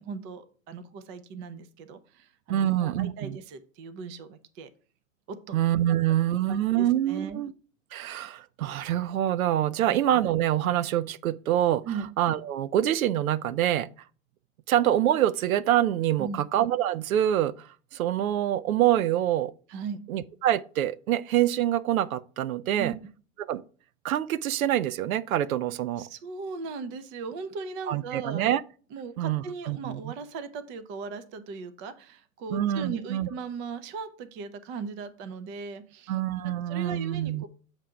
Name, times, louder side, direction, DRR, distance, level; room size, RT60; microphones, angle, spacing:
voice 1, 0.0-4.7 5.3-5.6 6.3-7.4 9.8-10.0 11.8-12.1 16.2-16.4 19.7-20.0 22.7-22.9 26.0-28.5 28.9-36.2 36.4-37.5, right 5 dB, 30° right, 0.6 m, -38 dB
voice 2, 2.5-3.4 5.5-7.5 7.9-11.8 12.2-13.9 14.7-17.7 17.9-19.5 20.1-22.9 23.5-23.6 24.0-26.1 27.9-28.6 29.2-30.1 32.5-33.3 36.1-37.4, right 12 dB, 75° right, 0.6 m, -26 dB
7.3 x 2.6 x 5.6 m
hypercardioid pair, 120°, 42 cm